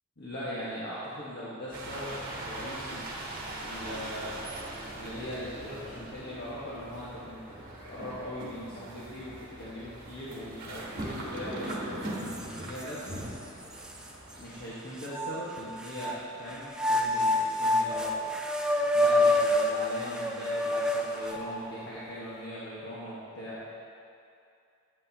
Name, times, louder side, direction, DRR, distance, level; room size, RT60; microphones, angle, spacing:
voice 1, 0.2-3.0 3.6-7.6 7.8-13.2 14.4-18.3 18.9-23.6, equal, 55° left, -10 dB, 1.3 m, -40 dB
sound 1, 1.7-14.7, right 1 dB, 45° right, 1.2 m, -40 dB
sound 2, 11.7-11.8 12.3-13.2 13.8-13.9 15.0-16.2 16.7-21.6, left 1 dB, 5° right, 0.4 m, -27 dB
8.7 x 8.2 x 2.8 m, 2.5 s
head